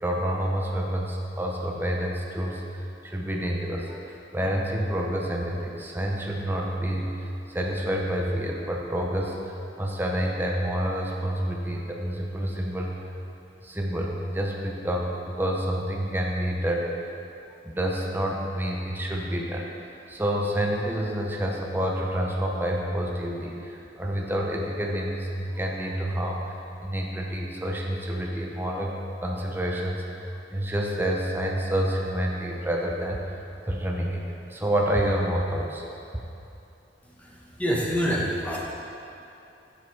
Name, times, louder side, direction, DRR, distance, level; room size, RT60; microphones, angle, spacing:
voice 1, 0.0-12.9 13.6-17.1 17.6-19.7 20.1-28.9 29.2-34.2 34.5-35.9, equal, 10° right, -1 dB, 0.7 m, -28 dB
voice 2, 37.0-38.6, equal, 10° left, -4 dB, 1.1 m, -27 dB
7.6 x 6.5 x 4.6 m, 2.8 s
head